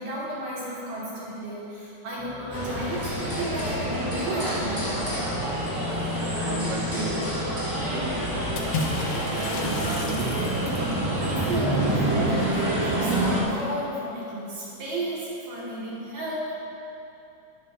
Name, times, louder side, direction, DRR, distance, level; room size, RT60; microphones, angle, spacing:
voice 1, 0.0-5.2 10.8-16.5, right 1 dB, 60° right, -7 dB, 4.1 m, -33 dB
sound 1, 2.2-9.3, left 5 dB, 85° left, 2.9 m, -37 dB
sound 2, 2.5-13.4, right 1 dB, 20° right, 0.5 m, -27 dB
voice 2, 6.2-7.3 7.8-8.2 9.3-10.4, right 4 dB, 85° right, 2 dB, 2.9 m, -34 dB
Water / Splash splatter, 8.6-10.9, left 3 dB, 65° left, 1.7 m, -32 dB
12.5 x 11.0 x 3.3 m, 2.9 s
omnidirectional pair, 4.4 m